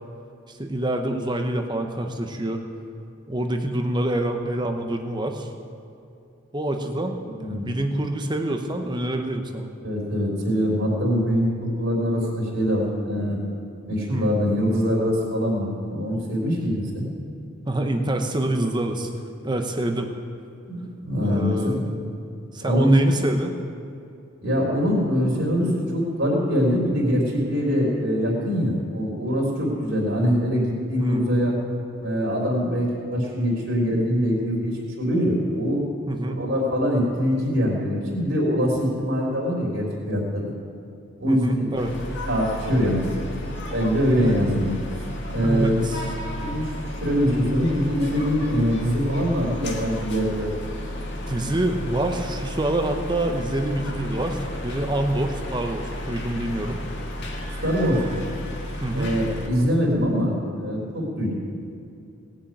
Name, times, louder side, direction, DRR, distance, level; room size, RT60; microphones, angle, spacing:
voice 1, 0.5-2.6 3.3-5.5 6.5-9.7 14.1-14.3 17.7-19.1 19.4-20.1 21.2-22.0 22.5-23.5 31.0-31.3 36.1-36.4 41.3-41.9 44.2-44.4 45.4-46.1 51.3-56.8 58.8-59.1, right 1 dB, 20° right, 5 dB, 1.0 m, -26 dB
voice 2, 7.4-7.7 9.8-13.4 13.9-17.0 20.7-21.8 22.6-23.0 24.4-31.5 32.0-35.8 36.3-40.5 41.2-41.7 42.2-43.0 43.7-45.0 45.3-45.8 46.4-50.5 57.6-58.2 58.9-61.4, equal, 55° right, -5 dB, 3.6 m, -23 dB
sound 1, 41.8-59.5, left 1 dB, 55° left, 2.0 m, -33 dB
19.0 x 7.3 x 9.2 m, 2.6 s
head